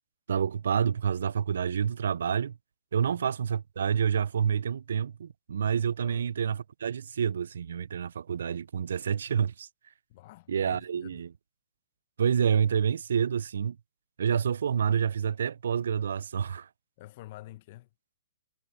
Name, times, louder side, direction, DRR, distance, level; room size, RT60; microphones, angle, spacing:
voice 1, 0.3-2.6 2.9-9.7 10.5-11.3 12.2-13.8 14.2-16.7, right 7 dB, 75° right, 0.3 m, -28 dB
voice 2, 6.0-6.3 10.1-11.2 17.0-17.9, left 16 dB, 45° left, 0.8 m, -49 dB
hypercardioid pair, 135°, 0 cm